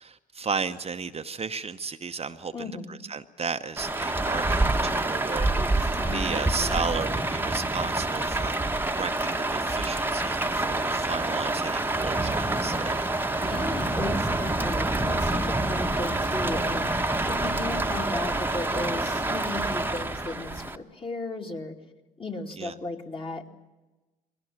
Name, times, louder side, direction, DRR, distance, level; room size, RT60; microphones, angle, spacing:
voice 1, 0.0-8.6 8.9-12.9 22.6-22.7, right 5 dB, 35° right, 8 dB, 0.8 m, -34 dB
voice 2, 2.5-3.0 5.6-5.7 6.0-6.9 13.4-16.9 17.2-21.8 22.2-23.6, left 2 dB, 30° left, 2 dB, 2.3 m, -35 dB
Rain, 3.8-20.8, right 2 dB, 10° right, 1.1 m, -27 dB
22.5 x 17.0 x 8.8 m, 1.1 s
hypercardioid pair, 50°, 19 cm